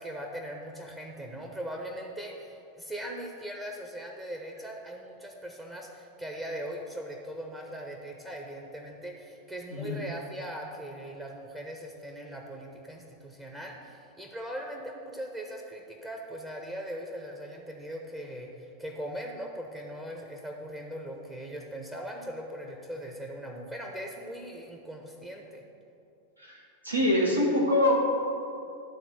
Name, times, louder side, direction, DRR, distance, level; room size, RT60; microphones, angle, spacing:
voice 1, 0.0-25.6, equal, 15° right, 0 dB, 0.8 m, -40 dB
voice 2, 26.4-27.9, left 1 dB, 85° right, -3 dB, 1.6 m, -25 dB
11.5 x 3.9 x 6.0 m, 2.6 s
figure-of-eight pair, 90°, 0 cm